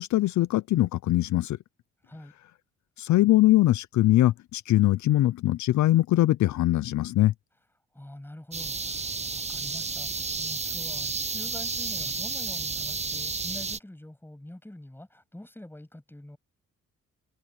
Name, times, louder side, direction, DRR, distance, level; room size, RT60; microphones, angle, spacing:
voice 1, 0.0-1.6 3.0-7.3, left 15 dB, 70° left, 0.6 m, -22 dB
voice 2, 7.9-10.1 10.4-16.4, left 1 dB, 5° left, 7.9 m, -45 dB
sound 1, 8.5-13.8, right 4 dB, 20° right, 1.1 m, -32 dB
cardioid pair, 90°, 30 cm